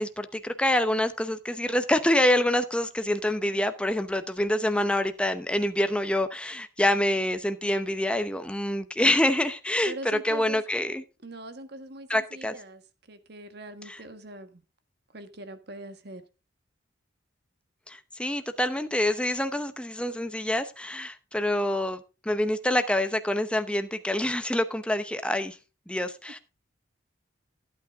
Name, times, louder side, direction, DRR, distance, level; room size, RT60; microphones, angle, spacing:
voice 1, 0.0-11.0 12.1-12.5 13.9-14.0 17.9-25.6 25.9-26.4, left 1 dB, 5° left, 0.7 m, -26 dB
voice 2, 9.8-10.6 11.2-12.8 13.1-14.6 15.1-16.2, right 2 dB, 55° right, 1.5 m, -42 dB
15.0 x 8.8 x 3.6 m
head